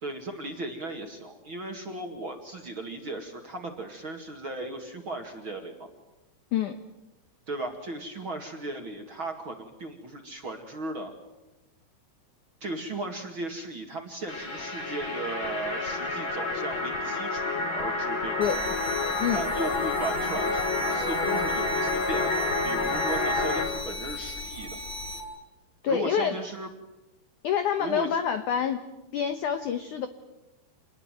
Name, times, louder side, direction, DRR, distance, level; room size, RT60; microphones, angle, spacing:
voice 1, 0.0-5.9 7.5-11.1 12.6-18.4 19.3-24.8 25.9-26.7 27.8-28.2, right 2 dB, 40° right, 3 dB, 2.1 m, -36 dB
sound 1, 14.3-23.7, left 2 dB, 40° left, 5.1 m, -29 dB
sound 2, 18.4-25.2, left 1 dB, 20° left, 7.3 m, -37 dB
voice 2, 25.8-26.4 27.4-28.9 29.1-30.1, left 8 dB, 80° left, 9 dB, 1.8 m, -27 dB
27.5 x 20.5 x 9.2 m, 0.97 s
omnidirectional pair, 5.1 m